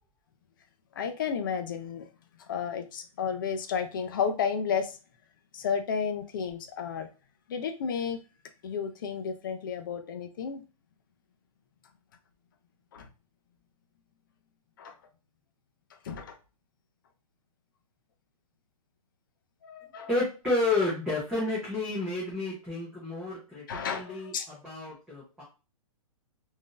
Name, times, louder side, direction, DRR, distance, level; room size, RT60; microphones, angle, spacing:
voice 1, 0.9-2.1 2.4-5.0 5.5-7.1 7.5-8.2 8.6-10.6 12.9-13.1 14.8-15.0 16.0-16.4 19.6-20.2 23.7-24.5, left 6 dB, 35° left, 0.4 m, -32 dB
voice 2, 20.1-23.6 23.9-24.3 24.6-25.4, left 2 dB, 5° right, 0.7 m, -30 dB
3.5 x 2.6 x 2.4 m
hypercardioid pair, 165°, 19 cm